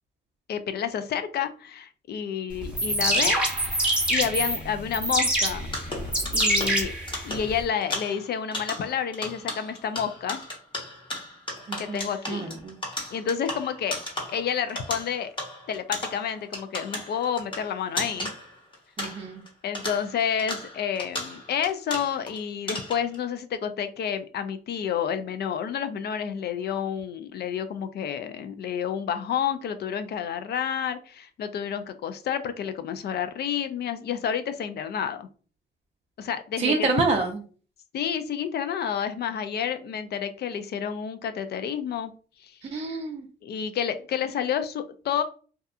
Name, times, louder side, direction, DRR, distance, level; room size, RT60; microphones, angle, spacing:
voice 1, 0.5-3.4 4.1-5.7 6.3-6.9 7.2-10.4 11.8-12.5 13.1-14.0 14.3-15.3 15.7-18.3 19.6-35.3 36.2-36.9 37.9-42.1 42.4-42.6 43.4-45.2, left 8 dB, 55° left, 10 dB, 0.4 m, -29 dB
sound 1, 2.6-7.6, right 1 dB, 5° right, 0.9 m, -25 dB
sound 2, 5.7-19.5 19.7-22.4 22.7-23.2, left 1 dB, 25° left, 1.0 m, -36 dB
voice 2, 11.7-12.7 19.0-19.4 36.6-37.4 42.7-43.2, right 3 dB, 30° right, 1 dB, 0.4 m, -27 dB
2.7 x 2.3 x 2.4 m, 0.40 s
cardioid pair, 90°, 20 cm